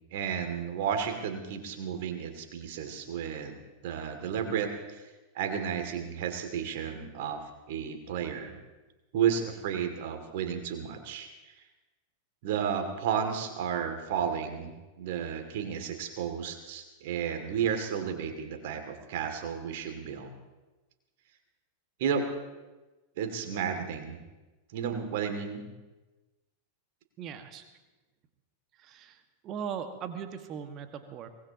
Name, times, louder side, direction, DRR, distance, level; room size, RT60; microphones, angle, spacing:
voice 1, 0.1-3.6 3.8-5.0 5.3-7.4 7.7-8.6 9.1-11.3 12.4-14.7 15.0-20.3 22.0-22.3 23.2-24.2 24.7-25.7, right 7 dB, 50° right, 5 dB, 2.5 m, -32 dB
voice 2, 27.2-27.6 28.8-29.2 29.4-31.3, right 7 dB, 35° right, 7 dB, 1.8 m, -39 dB
24.0 x 20.0 x 3.0 m, 1.1 s
figure-of-eight pair, 90°, 0 cm